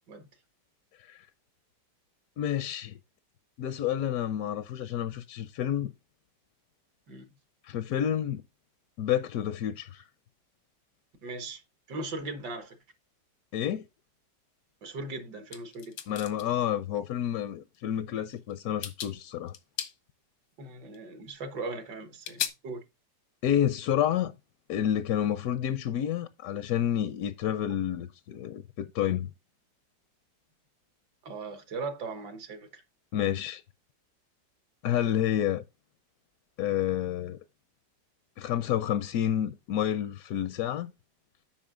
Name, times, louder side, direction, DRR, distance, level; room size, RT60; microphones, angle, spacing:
voice 1, 2.4-3.0 3.6-5.9 7.6-8.4 9.0-10.1 13.5-13.9 16.1-19.5 23.4-24.3 24.7-29.3 33.1-33.6 34.8-35.6 36.6-37.4 38.4-40.9, left 10 dB, 70° left, 0.9 m, -29 dB
voice 2, 11.2-11.6 11.9-12.8 14.8-15.9 20.6-22.8 31.2-32.7, right 3 dB, 70° right, 1.9 m, -38 dB
sound 1, 15.5-16.5 17.7-17.8 18.3-18.5 18.8-19.1 19.5-19.9 20.9-21.0 22.2-22.5, left 9 dB, 85° left, 1.6 m, -35 dB
8.7 x 5.5 x 3.7 m
omnidirectional pair, 1.9 m